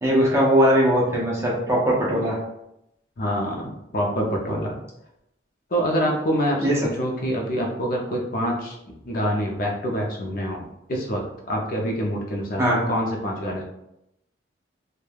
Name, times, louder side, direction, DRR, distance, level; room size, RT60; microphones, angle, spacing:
voice 1, 0.0-2.4 6.6-6.8 12.6-12.8, equal, 15° right, -4 dB, 0.5 m, -20 dB
voice 2, 3.2-4.8 5.7-13.6, equal, 50° left, 0 dB, 0.4 m, -26 dB
3.1 x 2.1 x 2.2 m, 0.83 s
head